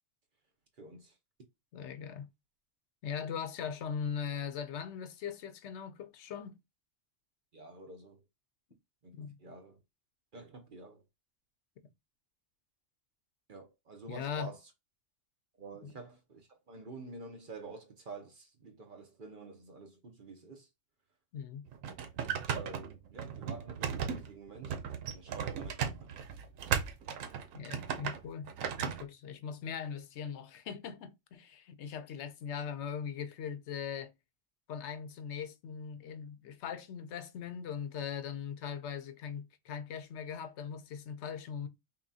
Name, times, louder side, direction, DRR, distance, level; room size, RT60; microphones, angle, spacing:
voice 1, 0.8-1.1 7.5-8.2 9.0-9.8 10.3-11.0 13.5-14.6 15.6-20.7 22.5-24.8 25.1-26.1, right 3 dB, 45° right, 0.9 m, -49 dB
voice 2, 1.7-2.3 3.0-6.6 9.1-9.3 14.1-14.5 15.8-15.9 21.3-21.6 27.5-28.5 28.8-34.1 34.7-41.7, left 7 dB, 65° left, 0.9 m, -40 dB
sound 1, 21.7-29.0, right 7 dB, 90° right, 1.0 m, -36 dB
5.5 x 2.3 x 2.7 m
omnidirectional pair, 1.3 m